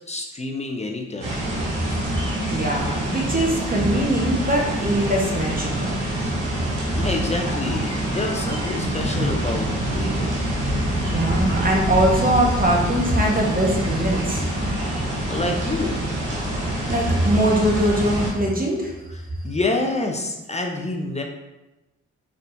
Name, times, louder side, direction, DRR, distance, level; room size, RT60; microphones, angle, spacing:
voice 1, 0.1-1.4 7.0-10.4 15.3-16.0 19.4-21.2, left 2 dB, 20° left, 2 dB, 0.6 m, -27 dB
sound 1, 1.2-18.3, right 1 dB, 90° right, 1.0 m, -25 dB
voice 2, 2.5-5.9 11.0-14.5 16.9-19.0, right 1 dB, 30° right, -1 dB, 1.2 m, -21 dB
4.1 x 3.5 x 2.6 m, 1.0 s
supercardioid pair, 45°, 30 cm